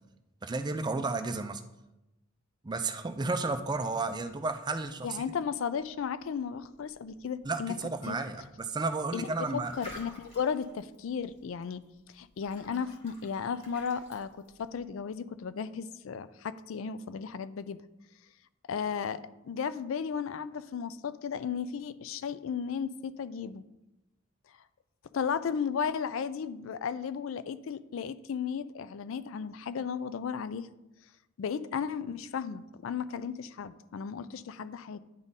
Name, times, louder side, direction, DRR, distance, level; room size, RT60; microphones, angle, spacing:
voice 1, 0.4-1.6 2.6-5.2 7.4-9.7, right 3 dB, 20° right, 9 dB, 0.4 m, -32 dB
sound 1, 3.1-14.8, left 1 dB, 30° left, 2.0 m, -55 dB
voice 2, 5.0-7.7 8.1-8.2 9.1-11.8 12.1-17.8 18.7-23.6 25.1-30.7 31.4-35.0, left 6 dB, 65° left, 15 dB, 0.4 m, -35 dB
10.5 x 3.7 x 4.0 m, 0.95 s
head